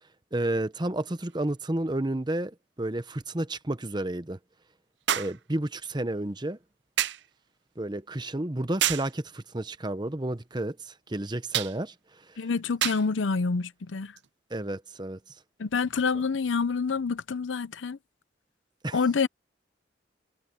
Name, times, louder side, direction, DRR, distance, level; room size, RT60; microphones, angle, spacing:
voice 1, 0.3-4.4 5.1-6.6 7.8-11.9 12.3-12.4 14.5-15.2 18.8-19.0, right 1 dB, 25° right, 0.9 m, -31 dB
sound 1, 1.3-1.4 5.1-5.4 7.0-7.3 8.8-9.1 11.5-11.8 12.8-13.1 14.2-14.3, right 11 dB, 65° right, 0.6 m, -28 dB
voice 2, 12.4-14.1 15.6-18.0 18.9-19.3, left 5 dB, 80° left, 0.6 m, -27 dB
head